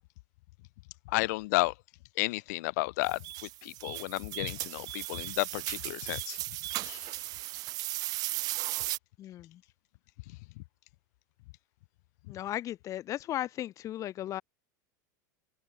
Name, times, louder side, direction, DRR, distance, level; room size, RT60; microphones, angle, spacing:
voice 1, 1.1-1.7 2.2-3.2 3.6-6.4 6.8-7.1, left 23 dB, 65° left, 1.6 m, -32 dB
sound 1, 3.1-9.0, right 19 dB, 40° right, 0.5 m, -36 dB
voice 2, 9.2-9.6 12.3-14.4, left 13 dB, 35° left, 1.4 m, -36 dB
supercardioid pair, 140°, 10 cm